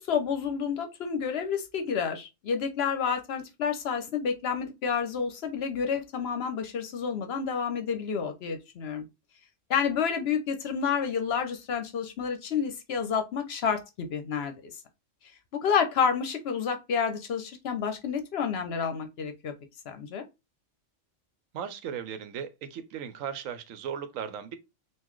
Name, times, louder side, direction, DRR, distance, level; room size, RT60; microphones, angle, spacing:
voice 1, 0.0-9.0 9.7-14.7 15.6-19.5 19.9-20.2, left 6 dB, 60° left, 0.8 m, -29 dB
voice 2, 21.5-24.6, right 8 dB, 90° right, 1.0 m, -37 dB
3.8 x 2.5 x 3.0 m
omnidirectional pair, 1.3 m